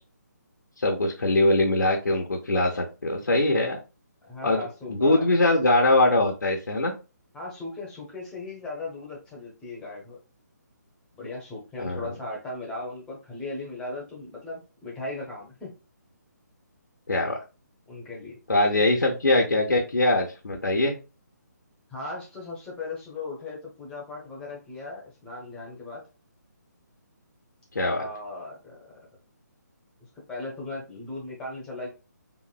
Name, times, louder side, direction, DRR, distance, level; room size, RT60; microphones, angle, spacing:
voice 1, 0.8-3.8 4.4-6.9 11.8-12.1 17.1-17.4 18.5-20.9 27.7-28.1, left 2 dB, 90° left, 0 dB, 0.6 m, -22 dB
voice 2, 4.2-5.5 7.3-10.2 11.2-15.7 17.9-18.4 21.9-26.0 28.0-28.8 30.3-31.9, left 2 dB, 10° left, -3 dB, 0.7 m, -37 dB
2.9 x 2.6 x 2.3 m, 0.31 s
figure-of-eight pair, 150°, 10 cm